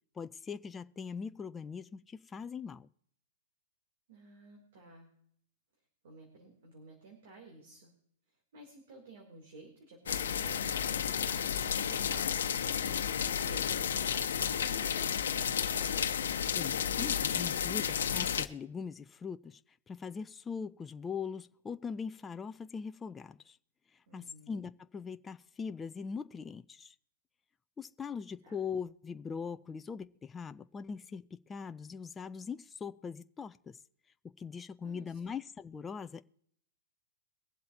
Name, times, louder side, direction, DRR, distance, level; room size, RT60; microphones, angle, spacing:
voice 1, 0.2-2.9 16.6-19.6 19.9-23.6 24.1-26.9 27.8-31.2 31.5-33.8 34.4-36.2, left 6 dB, 10° left, 0.4 m, -41 dB
voice 2, 4.1-5.1 6.0-7.9 8.5-16.1 24.1-24.6 28.4-28.6 34.8-35.4, right 2 dB, 60° right, 3.3 m, -53 dB
sound 1, 10.1-18.5, left 8 dB, 90° left, 0.9 m, -32 dB
23.0 x 7.7 x 2.9 m
hypercardioid pair, 155°, 0 cm